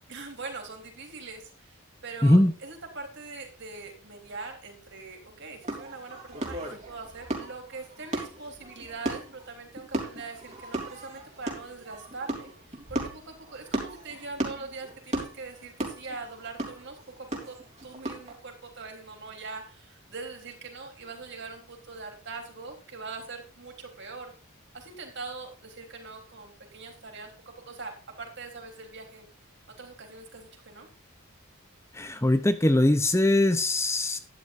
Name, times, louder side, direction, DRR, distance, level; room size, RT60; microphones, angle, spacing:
voice 1, 0.1-1.8 2.0-17.0 17.4-17.6 17.8-24.3 24.7-29.3 29.8-30.9, right 4 dB, 55° right, 3 dB, 3.7 m, -42 dB
voice 2, 2.2-2.5 31.9-34.2, left 1 dB, 15° left, 10 dB, 0.7 m, -21 dB
sound 1, 5.6-18.3, right 1 dB, 35° right, 3.5 m, -36 dB
12.5 x 11.0 x 2.6 m, 0.37 s
head